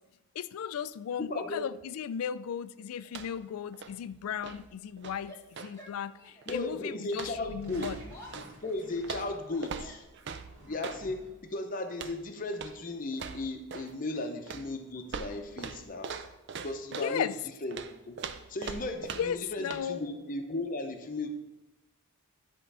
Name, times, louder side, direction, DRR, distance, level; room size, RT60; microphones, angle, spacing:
voice 1, 0.3-8.0 16.9-17.3 19.2-20.0, left 8 dB, 80° left, 16 dB, 0.3 m, -36 dB
voice 2, 1.2-1.7 6.5-8.0 8.3-10.1 10.6-16.1 16.6-17.3 17.6-18.2 18.5-21.4, left 2 dB, 35° left, 5 dB, 0.7 m, -36 dB
sound 1, 3.0-3.5 3.7-5.8 6.4-6.8 7.1-8.5 9.0-11.1 11.9-12.2 12.5-12.8 13.1-14.0 14.5-17.2 17.7-19.4 19.7-19.9, right 5 dB, 50° right, 0.4 m, -42 dB
Yell, 5.1-6.6 6.9-10.3, left 1 dB, 15° left, 1.0 m, -54 dB
sound 2, 7.3-9.9 10.3-11.5, equal, 80° right, 2.3 m, -51 dB
10.0 x 3.6 x 5.4 m, 0.99 s
head